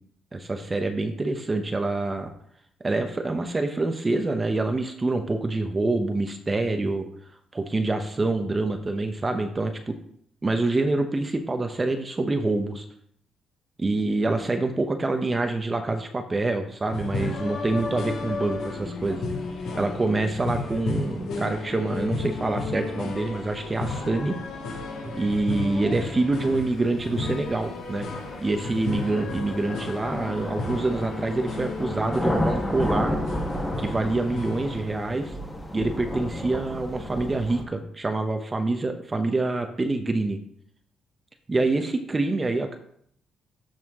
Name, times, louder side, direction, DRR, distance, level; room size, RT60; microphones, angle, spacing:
voice 1, 0.3-2.3 2.8-7.1 7.5-10.0 10.4-12.8 13.8-19.2 19.7-24.4 25.0-28.1 28.4-33.2 33.8-35.3 35.7-40.4 41.5-42.8, right 2 dB, 25° right, 6 dB, 0.8 m, -26 dB
sound 1, 16.8-34.8, left 3 dB, 75° left, 2.6 m, -33 dB
sound 2, 27.1-27.2 28.1-37.6, left 1 dB, 10° left, 1.4 m, -32 dB
12.5 x 4.3 x 3.7 m, 0.67 s
cardioid pair, 90°, 0 cm